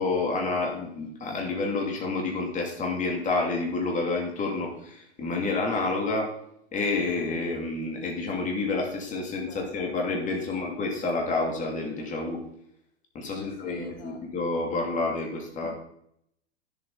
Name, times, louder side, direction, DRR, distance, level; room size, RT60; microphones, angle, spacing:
voice 1, 0.0-6.3 6.7-12.4 13.1-15.7, left 3 dB, 20° left, 0 dB, 2.4 m, -29 dB
voice 2, 9.2-9.7 10.5-10.7 13.4-14.2 15.6-15.7, left 3 dB, 40° left, 3 dB, 2.5 m, -46 dB
10.5 x 7.3 x 4.0 m, 0.74 s
hypercardioid pair, 115°, 34 cm